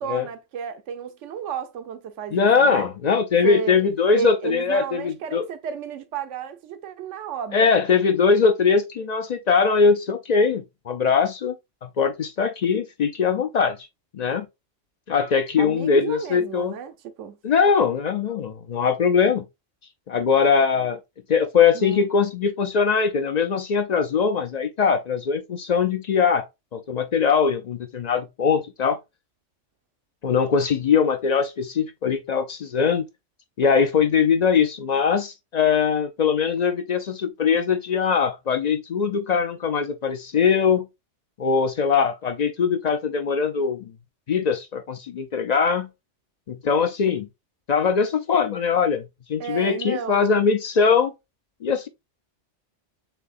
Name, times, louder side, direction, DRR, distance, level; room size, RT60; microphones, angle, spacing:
voice 1, 0.0-2.9 3.4-7.7 15.6-17.4 21.7-22.0 49.4-50.3, right 7 dB, 85° right, 1.0 m, -32 dB
voice 2, 2.3-5.5 7.5-11.5 11.8-13.8 14.1-14.4 15.1-16.7 17.4-19.4 20.1-21.0 21.3-26.5 26.7-29.0 30.2-33.0 33.6-40.8 41.4-43.9 44.3-45.9 46.5-47.3 47.7-51.1 51.6-51.9, left 6 dB, 55° left, 0.4 m, -21 dB
6.9 x 2.7 x 2.4 m
omnidirectional pair, 1.2 m